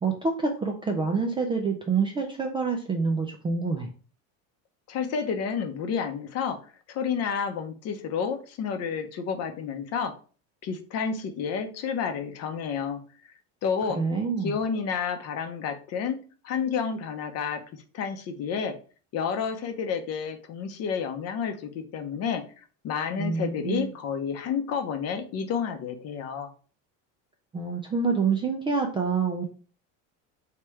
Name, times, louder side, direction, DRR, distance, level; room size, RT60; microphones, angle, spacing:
voice 1, 0.0-3.9 14.0-14.6 23.2-23.9 27.5-29.4, right 4 dB, 15° right, 2 dB, 0.3 m, -27 dB
voice 2, 4.9-6.6 6.9-10.1 10.6-13.0 13.6-14.0 14.4-16.2 16.4-18.7 19.1-22.4 22.8-26.5, left 6 dB, 40° left, 8 dB, 0.7 m, -30 dB
3.2 x 2.9 x 4.6 m, 0.39 s
cardioid pair, 150°, 37 cm